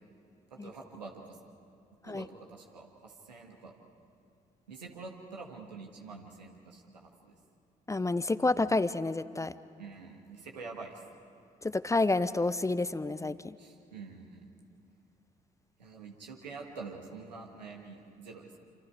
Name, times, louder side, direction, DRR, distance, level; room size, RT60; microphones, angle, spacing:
voice 1, 0.5-1.4 2.0-3.7 4.7-7.4 9.8-11.0 13.6-14.5 15.8-18.6, right 4 dB, 85° right, 1 dB, 1.8 m, -46 dB
voice 2, 7.9-9.5 11.6-13.6, left 2 dB, 15° left, 15 dB, 0.6 m, -29 dB
27.0 x 27.0 x 4.8 m, 2.4 s
figure-of-eight pair, 45°, 21 cm